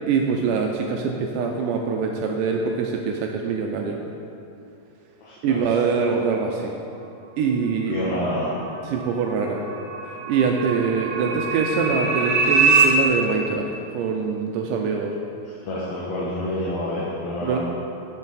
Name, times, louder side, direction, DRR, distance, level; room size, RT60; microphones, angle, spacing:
voice 1, 0.1-4.0 5.4-6.7 7.4-7.9 8.9-9.6 10.3-13.7 13.9-15.1 17.4-17.6, right 5 dB, 85° right, 1 dB, 1.8 m, -24 dB
voice 2, 5.2-5.7 7.9-8.5 11.2-11.3 15.6-17.6, left 1 dB, 65° left, -8 dB, 1.9 m, -28 dB
sound 1, 8.5-12.8, right 5 dB, 65° right, 1.5 m, -23 dB
9.3 x 6.7 x 4.0 m, 2.7 s
omnidirectional pair, 4.2 m